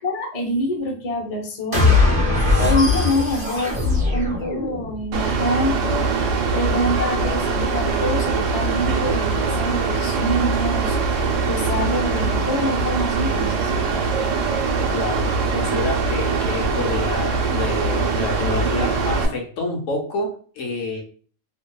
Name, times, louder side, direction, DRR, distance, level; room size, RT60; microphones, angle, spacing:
voice 1, 0.0-2.1 2.6-6.1 6.5-11.0 11.5-14.0, left 1 dB, 40° left, 1 dB, 0.6 m, -26 dB
sound 1, 1.7-5.1, left 3 dB, 10° right, 0.7 m, -19 dB
Mechanical fan, 5.1-19.3, right 4 dB, 85° right, 0.9 m, -22 dB
voice 2, 14.9-21.0, left 2 dB, 90° left, 1 dB, 1.1 m, -28 dB
2.7 x 2.1 x 2.2 m, 0.42 s
omnidirectional pair, 1.3 m